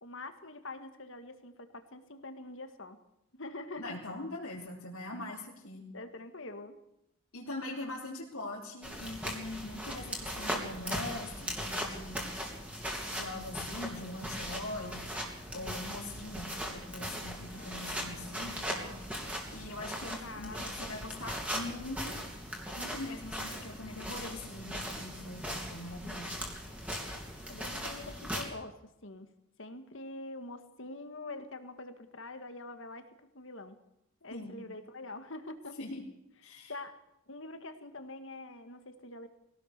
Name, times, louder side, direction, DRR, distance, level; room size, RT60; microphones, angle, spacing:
voice 1, 0.0-3.0 3.4-4.0 5.9-6.8 20.2-20.7 27.5-29.3 29.6-33.1 33.3-33.8 34.2-35.8 36.7-37.0 37.3-39.3, left 2 dB, 55° left, 8 dB, 1.9 m, -45 dB
voice 2, 3.8-5.8 7.3-12.2 13.1-15.0 15.5-18.9 19.5-22.2 22.7-26.4 34.3-34.5 35.8-36.0 36.4-36.7, left 2 dB, 75° left, -6 dB, 4.1 m, -42 dB
sound 1, 8.8-28.4, equal, 5° right, 3.2 m, -39 dB
Guitar, 17.6-21.2, left 1 dB, 35° left, 3.1 m, -59 dB
22.0 x 17.0 x 6.9 m, 0.83 s
head